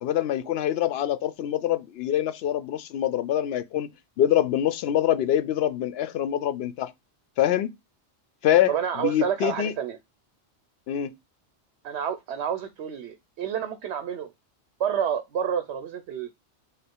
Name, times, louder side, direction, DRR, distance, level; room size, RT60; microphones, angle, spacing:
voice 1, 0.0-3.9 4.2-6.9 7.4-7.7 8.4-9.7 10.9-11.1, left 11 dB, 70° left, 0.8 m, -25 dB
voice 2, 8.7-10.0 11.8-14.3 14.8-16.3, right 8 dB, 80° right, 0.9 m, -29 dB
5.0 x 2.1 x 4.3 m
omnidirectional pair, 1.1 m